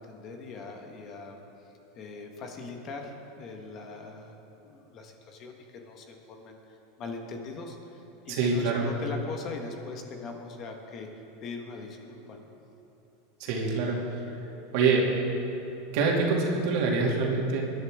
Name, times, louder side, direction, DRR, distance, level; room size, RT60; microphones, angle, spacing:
voice 1, 0.0-1.4 1.9-11.1 11.4-12.5, left 3 dB, 35° left, 3 dB, 1.5 m, -41 dB
voice 2, 8.3-8.9 13.4-14.2 14.7-15.1 15.9-17.6, right 4 dB, 60° right, -2 dB, 2.6 m, -25 dB
21.5 x 11.0 x 3.7 m, 3.0 s
supercardioid pair, 140°, 0 cm